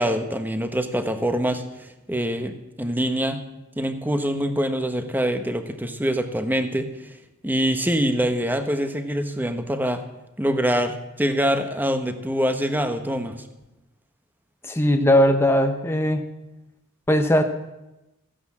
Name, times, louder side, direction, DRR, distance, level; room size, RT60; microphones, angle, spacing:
voice 1, 0.0-1.6 2.1-3.4 3.8-6.9 7.4-10.0 10.4-13.4, equal, 10° right, 8 dB, 1.1 m, -24 dB
voice 2, 14.6-16.2 17.1-17.4, left 1 dB, 10° left, 5 dB, 0.8 m, -19 dB
15.0 x 10.5 x 7.3 m, 0.99 s
head